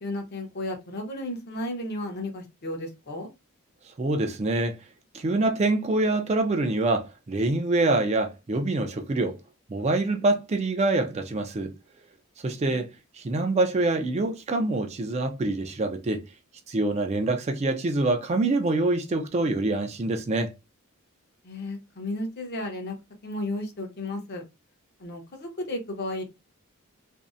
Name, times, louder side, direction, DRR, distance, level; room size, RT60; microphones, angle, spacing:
voice 1, 0.0-3.3 21.4-23.0 23.2-24.4 25.0-26.2, left 1 dB, 50° left, 0.7 m, -33 dB
voice 2, 4.0-4.8 5.1-9.4 9.7-11.7 12.4-12.9 13.2-16.2 16.7-20.5, right 2 dB, 30° right, 0.4 m, -25 dB
2.6 x 2.0 x 2.4 m
head